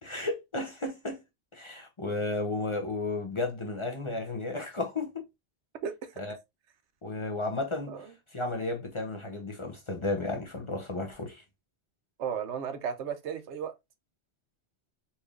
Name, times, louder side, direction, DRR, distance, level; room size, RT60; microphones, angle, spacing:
voice 1, 0.0-1.2 1.5-5.2 6.2-6.4 7.0-8.0 8.3-11.4, left 2 dB, 30° left, 0.7 m, -33 dB
voice 2, 5.8-6.2 7.9-8.1 12.2-13.7, right 7 dB, 85° right, 1.0 m, -35 dB
4.2 x 3.4 x 2.4 m
omnidirectional pair, 1.1 m